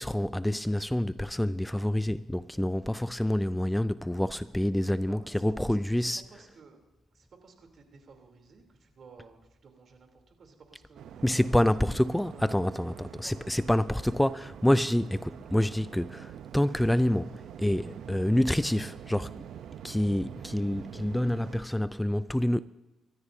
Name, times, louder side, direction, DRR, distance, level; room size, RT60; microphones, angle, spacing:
voice 1, 0.0-6.2 11.2-19.5 19.8-22.6, left 1 dB, 5° left, 0.3 m, -27 dB
voice 2, 5.1-6.8 7.1-11.8 12.3-12.6 13.0-13.7 14.1-14.2, right 5 dB, 50° right, 3.2 m, -55 dB
Waves surf, 11.0-21.6, right 9 dB, 75° right, 0.7 m, -45 dB
27.0 x 13.0 x 2.7 m
cardioid pair, 90°, 0 cm